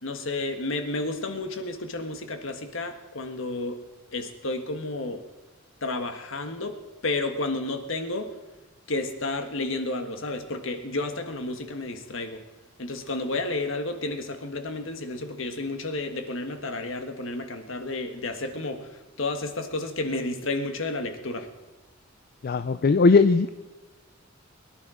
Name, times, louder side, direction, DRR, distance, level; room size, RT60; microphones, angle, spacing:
voice 1, 0.0-3.8 4.1-5.2 5.8-6.7 7.0-8.3 8.9-12.4 12.8-18.9 19.2-21.5, left 2 dB, 65° left, 7 dB, 1.5 m, -31 dB
voice 2, 22.4-23.5, left 4 dB, 45° left, 11 dB, 0.4 m, -19 dB
22.0 x 11.0 x 5.0 m, 1.1 s
head